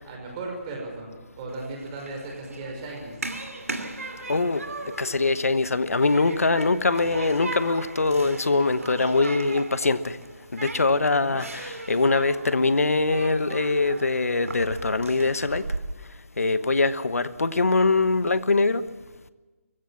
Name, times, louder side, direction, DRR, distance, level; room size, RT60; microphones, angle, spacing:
voice 1, 0.0-3.1 11.0-11.4, right 2 dB, 25° right, 5.8 m, -36 dB
Human group actions, 1.5-15.8, right 2 dB, 85° right, 2.8 m, -38 dB
voice 2, 4.3-4.6 5.0-10.2 10.5-15.6 16.4-18.8, left 3 dB, 85° left, 1.2 m, -23 dB
23.0 x 15.5 x 7.3 m
figure-of-eight pair, 155°, 8 cm